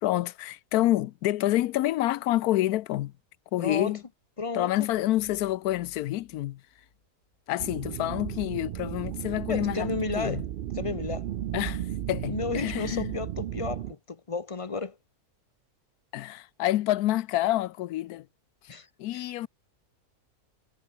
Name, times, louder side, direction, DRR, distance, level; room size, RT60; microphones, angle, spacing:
voice 1, 0.0-3.1 3.5-4.0 4.5-6.6 7.5-9.9 10.2-10.4 11.5-13.1 16.1-18.3 18.6-18.7 19.0-19.5, left 15 dB, 90° left, 1.1 m, -28 dB
voice 2, 3.6-4.0 4.4-4.7 9.5-10.4 10.8-11.3 12.3-15.0 18.7-18.9 19.1-19.2, left 4 dB, 30° left, 0.7 m, -32 dB
sound 1, 4.8-7.5, left 3 dB, 65° left, 4.3 m, -59 dB
sound 2, 7.6-13.9, right 11 dB, 85° right, 0.4 m, -34 dB
omnidirectional pair, 1.6 m